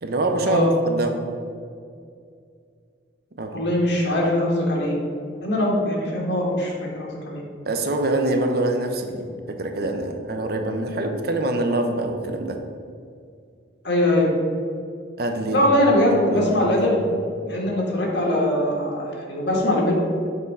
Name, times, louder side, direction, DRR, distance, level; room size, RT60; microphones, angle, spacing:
voice 1, 0.0-0.6 0.8-1.3 3.4-3.6 7.7-12.6 15.2-15.6 16.3-16.5, right 2 dB, 50° right, 4 dB, 0.6 m, -25 dB
voice 2, 3.5-5.0 5.4-7.4 13.8-14.3 15.5-17.0 17.5-19.9, left 1 dB, 65° left, -3 dB, 1.5 m, -21 dB
6.5 x 3.6 x 5.4 m, 2.3 s
head